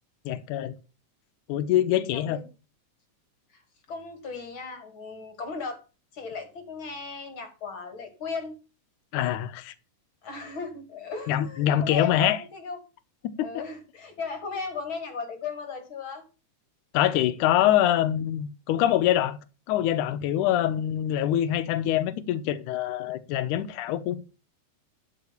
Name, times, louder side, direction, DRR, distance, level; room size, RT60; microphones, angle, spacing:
voice 1, 0.3-0.7 1.5-2.4 9.1-9.7 11.3-12.4 13.4-13.5 16.9-19.4 19.7-24.2, left 12 dB, 85° left, 2.3 m, -24 dB
voice 2, 2.1-2.4 3.9-5.8 6.1-8.5 10.2-12.8 13.4-16.2 20.4-20.5, left 4 dB, 45° left, 2.4 m, -36 dB
12.0 x 5.0 x 7.0 m
omnidirectional pair, 3.5 m